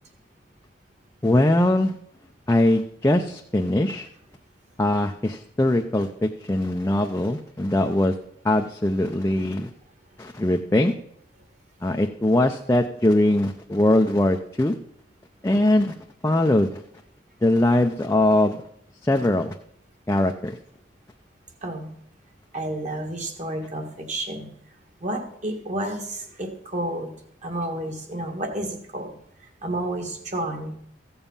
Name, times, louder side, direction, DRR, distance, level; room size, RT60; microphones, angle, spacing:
voice 1, 1.2-1.9 2.5-4.1 4.8-8.1 8.4-9.7 10.2-10.9 11.8-14.8 15.4-15.9 16.2-16.8 17.4-18.6 19.0-19.5 20.1-20.6, left 1 dB, 15° left, 3 dB, 0.5 m, -21 dB
voice 2, 21.6-21.9 22.5-24.5 25.0-27.1 27.4-30.7, right 1 dB, 40° right, 3 dB, 1.8 m, -31 dB
14.5 x 7.1 x 5.5 m, 0.70 s
head